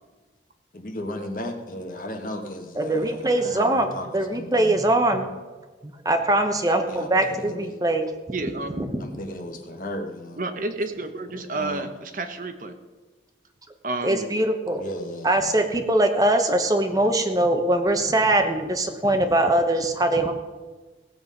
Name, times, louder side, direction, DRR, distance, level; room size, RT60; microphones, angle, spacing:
voice 1, 0.7-4.8 6.9-7.8 9.0-10.4 11.3-11.9 14.7-15.5, left 1 dB, 50° left, 4 dB, 1.5 m, -35 dB
voice 2, 2.8-3.9 4.1-5.3 5.8-8.1 8.8-9.1 14.0-14.8 15.2-20.3, right 1 dB, 20° right, 6 dB, 1.0 m, -22 dB
voice 3, 8.3-8.9 10.4-12.7 13.8-14.3, right 2 dB, 50° right, 7 dB, 1.0 m, -30 dB
17.5 x 7.8 x 5.3 m, 1.3 s
head